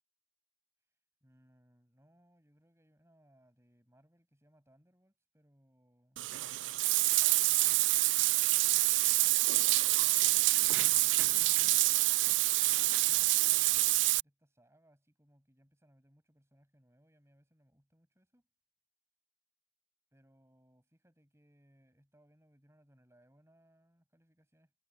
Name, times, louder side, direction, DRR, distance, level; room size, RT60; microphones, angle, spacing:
voice 1, 1.2-6.2 7.1-9.1 9.5-12.3 12.8-18.5 20.1-24.7, equal, 15° right, 5.9 m, -68 dB
Bathtub (filling or washing), 6.2-14.2, right 19 dB, 70° right, 0.3 m, -27 dB
head